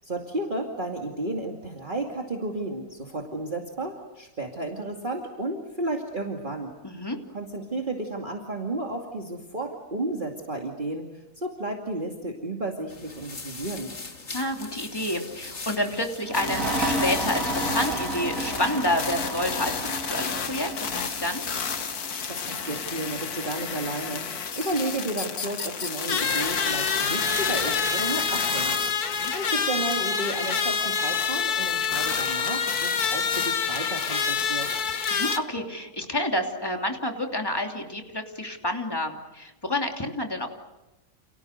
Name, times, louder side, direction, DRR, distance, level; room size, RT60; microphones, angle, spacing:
voice 1, 0.0-6.7 7.3-14.0 22.3-28.9 29.3-34.9, right 2 dB, 30° right, 1 dB, 2.6 m, -32 dB
voice 2, 6.8-7.2 14.3-21.4 29.1-29.3 35.1-40.5, left 1 dB, 15° left, 3 dB, 3.0 m, -29 dB
sound 1, 12.9-21.5, left 3 dB, 45° left, 2.3 m, -41 dB
sound 2, 16.2-23.6, right 2 dB, 55° right, 4.4 m, -32 dB
sound 3, 16.3-35.4, left 6 dB, 75° left, 2.0 m, -28 dB
30.0 x 29.0 x 6.7 m, 0.99 s
omnidirectional pair, 1.6 m